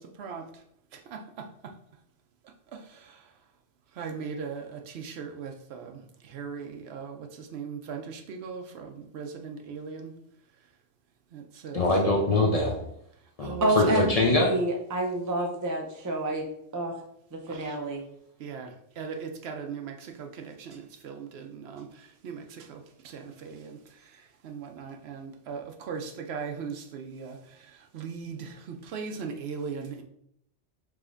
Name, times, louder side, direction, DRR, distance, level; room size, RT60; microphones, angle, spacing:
voice 1, 4.0-4.6 5.2-5.5 6.4-6.7 6.9-7.1 7.5-8.0 8.4-8.6 9.1-10.0 11.6-11.8 13.4-14.0 18.4-18.7 19.0-19.1 19.4-19.9 22.2-22.4 25.5-25.6 25.9-26.0 26.3-27.0 28.0-28.4 28.9-30.0, right 6 dB, 70° right, 5 dB, 0.8 m, -36 dB
voice 2, 11.7-12.8 13.4-14.5, left 2 dB, 40° left, -1 dB, 0.6 m, -23 dB
voice 3, 13.6-16.5 16.7-16.9 17.3-18.0, right 1 dB, 25° right, 1 dB, 0.4 m, -28 dB
4.9 x 3.2 x 2.5 m, 0.73 s
omnidirectional pair, 1.2 m